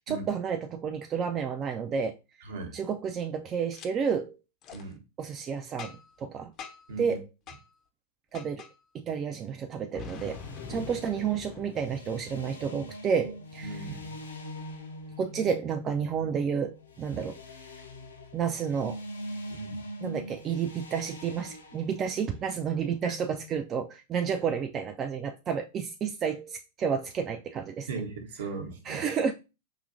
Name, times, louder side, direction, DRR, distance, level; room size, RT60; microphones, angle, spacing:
voice 1, 0.1-2.2 2.7-4.4 5.2-6.5 7.0-7.3 8.3-8.7 8.9-10.4 10.7-13.8 15.2-17.4 18.3-19.0 20.0-27.9 28.9-29.3, right 6 dB, 30° right, 0.3 m, -31 dB
voice 2, 2.4-2.8 4.7-5.0 6.9-7.2 10.6-10.9 13.6-14.2 17.1-17.2 19.5-19.8 27.9-29.0, right 4 dB, 60° right, 0.8 m, -38 dB
Boom, 3.7-3.9 4.6-4.8 5.8-6.2 6.6-6.9 7.5-7.6 8.3-8.7 9.9-12.6, left 6 dB, 35° left, 0.6 m, -44 dB
sound 1, 9.9-23.6, left 1 dB, 75° left, 0.6 m, -44 dB
4.9 x 2.7 x 2.5 m
figure-of-eight pair, 90°, 0 cm